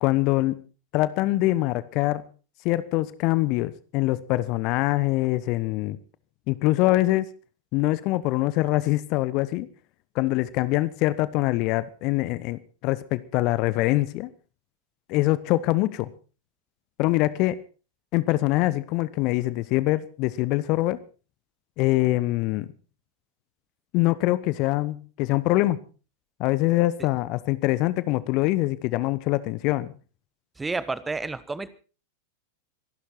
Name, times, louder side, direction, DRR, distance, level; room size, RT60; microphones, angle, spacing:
voice 1, 0.0-0.5 0.9-2.2 2.6-6.0 6.5-7.3 7.7-9.7 10.1-14.3 15.1-16.1 17.0-17.6 18.1-21.0 21.8-22.7 23.9-25.8 26.4-29.9, left 18 dB, 40° left, 17 dB, 1.0 m, -24 dB
voice 2, 30.6-31.7, right 3 dB, 10° right, 16 dB, 1.3 m, -30 dB
26.0 x 11.5 x 4.3 m, 0.36 s
figure-of-eight pair, 90°, 0 cm